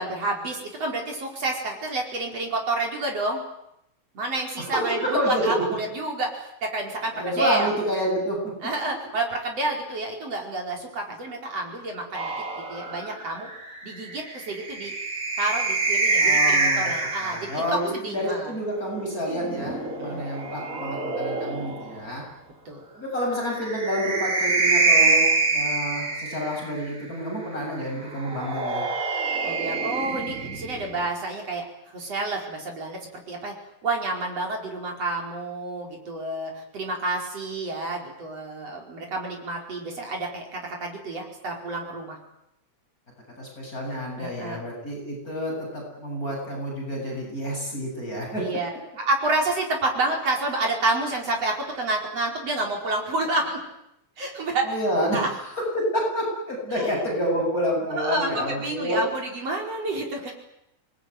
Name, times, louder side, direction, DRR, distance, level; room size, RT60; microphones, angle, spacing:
voice 1, 0.0-3.4 4.1-7.7 8.6-12.3 12.7-13.5 13.8-14.9 15.4-18.5 20.0-20.2 22.7-22.8 29.4-33.0 33.3-33.5 33.8-42.2 44.2-44.6 48.4-48.7 49.0-53.6 54.2-54.6 55.1-55.3 56.7-56.9 57.9-60.3, right 2 dB, 50° right, 1 dB, 5.9 m, -29 dB
voice 2, 4.6-5.6 7.1-8.4 16.2-16.9 17.2-22.2 22.9-28.8 43.4-48.4 54.6-55.2 55.7-59.0, equal, 25° left, -2 dB, 7.9 m, -28 dB
sound 1, 12.1-17.7 19.1-22.0 23.4-26.9 28.1-31.1, right 3 dB, 25° right, 3.3 m, -26 dB
27.0 x 20.0 x 9.5 m, 0.79 s
omnidirectional pair, 3.6 m